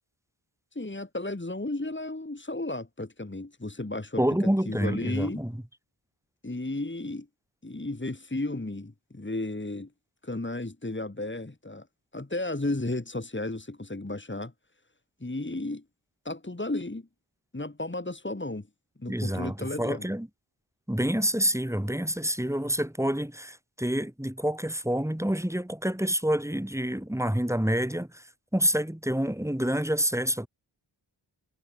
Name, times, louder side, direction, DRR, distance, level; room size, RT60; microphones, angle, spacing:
voice 1, 0.7-4.2 4.7-5.4 6.4-7.3 7.6-9.9 10.2-11.9 12.1-14.5 15.2-15.8 16.3-17.1 17.5-18.7 19.0-20.1, left 2 dB, 25° left, 3.4 m, -33 dB
voice 2, 4.2-5.5 19.1-20.3 20.9-28.2 28.5-30.5, equal, 5° right, 4.0 m, -27 dB
wide cardioid pair, 70°, 48 cm